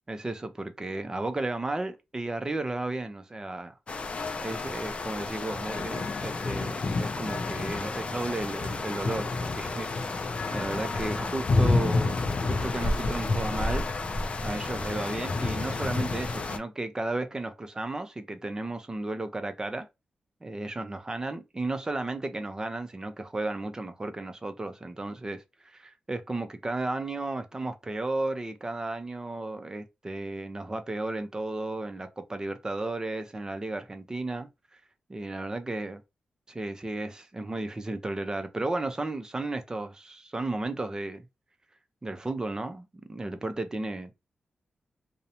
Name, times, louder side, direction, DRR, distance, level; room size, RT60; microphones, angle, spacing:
voice 1, 0.1-3.7 4.4-13.9 14.4-19.9 20.4-34.8 35.1-36.0 36.5-41.2 42.0-44.1, right 2 dB, 20° right, 0.5 m, -34 dB
sound 1, 3.9-16.6, left 3 dB, 40° left, 0.4 m, -29 dB
2.5 x 2.1 x 2.8 m
wide cardioid pair, 110°, 3 cm